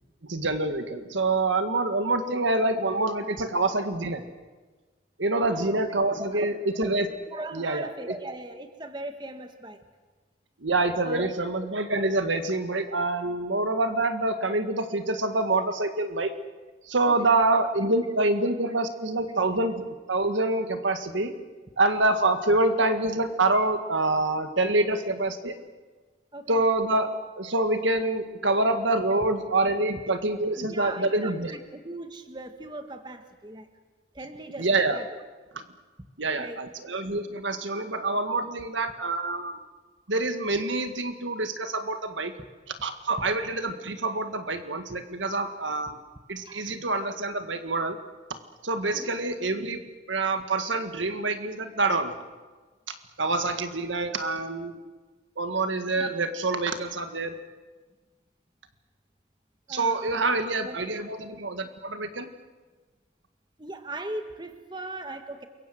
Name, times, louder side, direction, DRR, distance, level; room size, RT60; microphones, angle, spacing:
voice 1, 0.2-4.2 5.2-7.1 7.5-7.9 10.6-16.3 16.8-21.3 21.8-25.6 26.5-27.1 27.4-31.5 34.6-35.0 35.5-35.6 36.2-39.6 40.1-42.3 42.7-46.0 46.3-48.0 48.6-52.2 52.9-54.8 55.4-57.4 59.7-62.3, right 2 dB, 90° right, 8 dB, 1.8 m, -26 dB
voice 2, 5.3-5.8 6.2-6.9 7.2-9.8 11.0-11.3 17.1-17.3 26.3-26.6 30.6-33.7 34.1-34.7 34.9-35.0 36.4-36.6 46.4-46.7 48.9-49.1 56.0-56.1 59.7-60.3 60.6-60.9 63.6-65.5, right 2 dB, 25° right, 7 dB, 1.5 m, -39 dB
28.5 x 23.0 x 7.7 m, 1.4 s
head